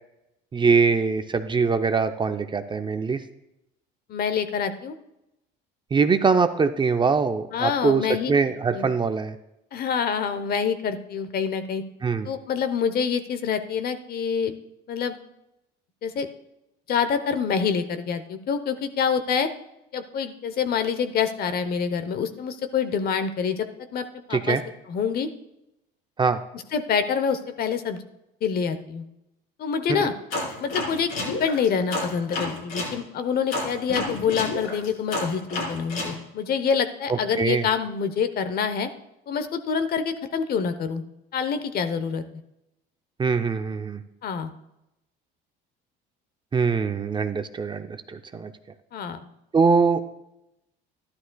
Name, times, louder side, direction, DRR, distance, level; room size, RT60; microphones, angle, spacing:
voice 1, 0.5-3.2 5.9-9.3 12.0-12.3 24.3-24.6 26.2-26.4 29.9-30.1 37.1-37.7 43.2-44.0 46.5-48.5 49.5-50.0, right 5 dB, 25° right, 8 dB, 0.5 m, -23 dB
voice 2, 4.1-4.9 7.5-8.3 8.7-8.9 9.7-11.8 12.2-14.5 14.9-15.2 16.0-16.3 16.9-19.5 19.9-23.7 23.9-24.6 24.9-25.3 26.5-28.0 28.4-29.0 29.6-30.1 30.6-38.9 39.3-41.0 41.3-42.2 44.2-44.5 48.9-49.2, left 6 dB, 50° left, 11 dB, 0.8 m, -26 dB
sound 1, 30.3-32.9 33.5-36.1, left 2 dB, 85° left, 4.1 m, -30 dB
12.5 x 11.5 x 2.3 m, 0.86 s
cardioid pair, 100°, 20 cm